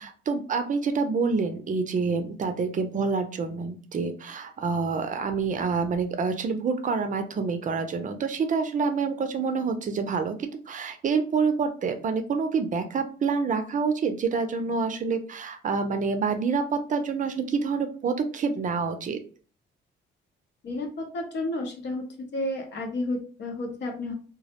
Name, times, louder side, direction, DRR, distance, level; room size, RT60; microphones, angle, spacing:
voice 1, 0.0-19.2, right 5 dB, 40° right, 7 dB, 0.5 m, -27 dB
voice 2, 20.6-22.0 22.3-24.1, left 2 dB, 65° left, 2 dB, 0.8 m, -31 dB
2.2 x 2.0 x 2.8 m, 0.40 s
cardioid pair, 90°, 20 cm